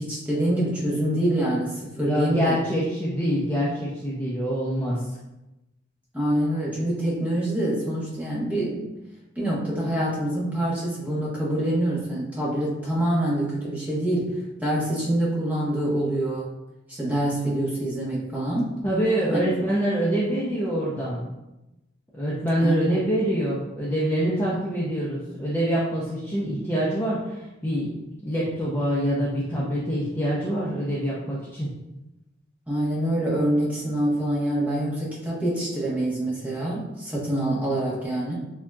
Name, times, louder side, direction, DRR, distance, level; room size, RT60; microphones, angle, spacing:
voice 1, 0.0-2.6 6.1-8.8 9.3-16.5 16.9-18.7 19.3-19.4 22.6-23.0 32.7-38.3, right 1 dB, 10° right, -7 dB, 1.2 m, -25 dB
voice 2, 2.0-5.0 18.8-21.2 22.1-27.9 28.2-31.7, equal, 10° left, -8 dB, 0.6 m, -25 dB
7.0 x 2.8 x 2.4 m, 0.97 s
head